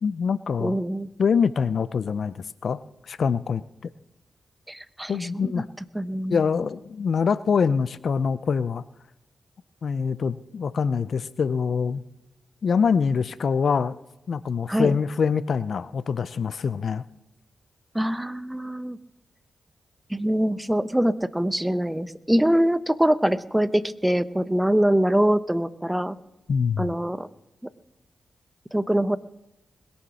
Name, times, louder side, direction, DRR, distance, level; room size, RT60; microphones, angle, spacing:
voice 1, 0.0-0.8 1.2-2.8 3.1-3.6 5.1-5.7 6.3-8.8 9.8-12.0 12.6-14.0 14.3-17.0 26.5-26.9, left 6 dB, 65° left, 16 dB, 0.5 m, -24 dB
voice 2, 0.6-1.1 4.7-5.6 5.9-6.4 14.7-15.0 17.9-19.0 20.1-26.2 26.8-27.3 28.7-29.2, right 1 dB, 10° right, 14 dB, 0.9 m, -24 dB
21.0 x 7.1 x 6.3 m, 0.95 s
supercardioid pair, 45°, 0 cm